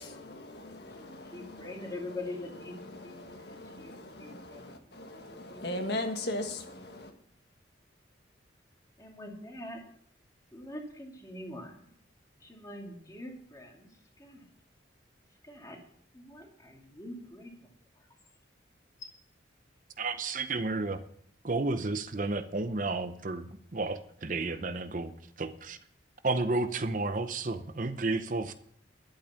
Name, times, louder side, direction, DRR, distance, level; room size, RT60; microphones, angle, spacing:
voice 1, 0.1-1.9 2.9-7.1, left 1 dB, 60° left, 5 dB, 1.5 m, -39 dB
voice 2, 0.9-2.8 3.0-4.7 5.1-5.8 9.0-9.8 10.5-11.9 12.4-13.9 14.2-14.5 15.4-15.8 16.1-17.5, left 1 dB, 20° left, 1 dB, 2.4 m, -44 dB
voice 3, 20.0-21.0 21.4-25.1 25.4-25.8 26.2-28.5, right 3 dB, 45° right, 10 dB, 0.7 m, -32 dB
11.5 x 8.7 x 7.1 m, 0.63 s
head